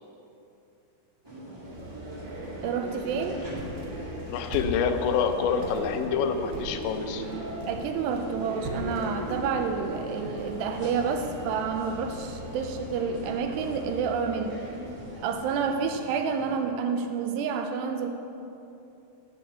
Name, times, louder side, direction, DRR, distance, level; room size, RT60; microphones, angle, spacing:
sound 1, 1.2-16.6, equal, 20° right, 0.7 m, -43 dB
sound 2, 1.6-15.6, equal, 45° right, 2.9 m, -40 dB
voice 1, 2.6-3.4 7.7-14.6 15.2-18.1, right 6 dB, 80° right, 6 dB, 2.7 m, -29 dB
sound 3, 2.9-13.4, right 1 dB, 65° right, 3.5 m, -43 dB
voice 2, 4.3-7.3, left 6 dB, 85° left, 7 dB, 3.1 m, -27 dB
16.5 x 6.7 x 6.8 m, 2.8 s
omnidirectional pair, 5.2 m